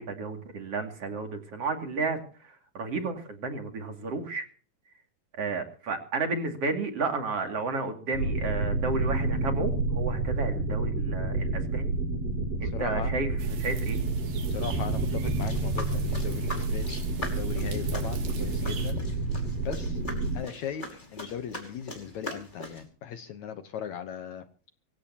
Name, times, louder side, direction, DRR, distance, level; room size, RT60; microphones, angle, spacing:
voice 1, 0.0-2.2 2.7-4.4 5.3-11.9 12.6-14.0, right 3 dB, 45° right, 5 dB, 3.3 m, -32 dB
sound 1, 8.1-20.4, right 2 dB, 70° right, 8.9 m, -29 dB
voice 2, 12.7-13.2 14.5-17.0 17.3-19.0 19.7-20.0 20.3-24.4, left 8 dB, 65° left, 10 dB, 2.1 m, -38 dB
sound 2, 13.4-18.9, right 4 dB, 90° right, 4.4 m, -39 dB
sound 3, 15.4-22.9, left 1 dB, 10° left, 5.2 m, -41 dB
24.0 x 16.0 x 2.9 m, 0.41 s
omnidirectional pair, 4.0 m